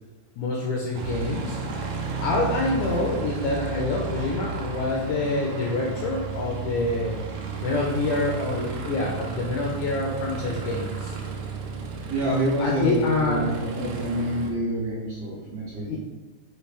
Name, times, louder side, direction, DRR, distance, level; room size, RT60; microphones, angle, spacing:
voice 1, 0.4-1.6 2.2-7.2 7.6-11.1 12.6-13.5 15.8-16.0, left 2 dB, 80° left, -2 dB, 1.7 m, -26 dB
Aircraft, 0.9-14.5, right 4 dB, 90° right, 1.6 m, -33 dB
voice 2, 12.1-16.0, right 1 dB, 75° right, -7 dB, 1.4 m, -27 dB
5.5 x 2.9 x 3.3 m, 1.2 s
omnidirectional pair, 3.9 m